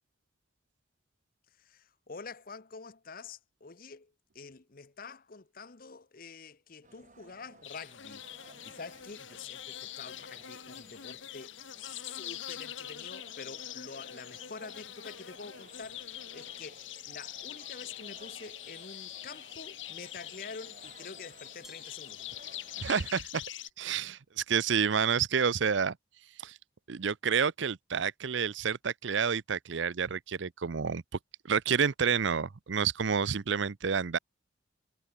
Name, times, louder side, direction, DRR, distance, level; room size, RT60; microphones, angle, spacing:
voice 1, 1.6-8.2 8.6-22.4, left 5 dB, 45° left, 0.9 m, -47 dB
sound 1, 6.8-23.1, right 3 dB, 40° right, 6.7 m, -58 dB
sound 2, 7.6-23.7, left 11 dB, 75° left, 1.5 m, -44 dB
Glass, 21.6-23.1, right 1 dB, ahead, 1.4 m, -60 dB
voice 2, 22.8-23.4 23.8-26.0 26.4-26.6 26.9-31.0 31.4-34.2, right 6 dB, 70° right, 0.6 m, -29 dB
head